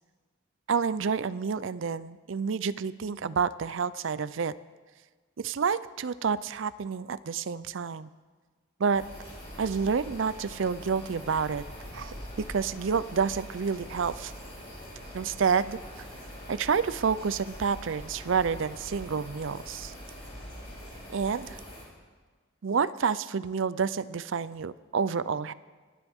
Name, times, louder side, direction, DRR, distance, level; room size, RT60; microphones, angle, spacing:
voice 1, 0.7-4.5 5.4-8.1 8.8-9.0 9.6-11.6 11.9-12.1 12.5-14.3 15.1-15.8 16.5-19.9 21.1-21.6 22.6-25.5, right 6 dB, 65° right, 16 dB, 0.5 m, -29 dB
sound 1, 8.9-21.8, equal, 25° left, 5.6 m, -43 dB
27.5 x 11.5 x 3.6 m, 1.4 s
head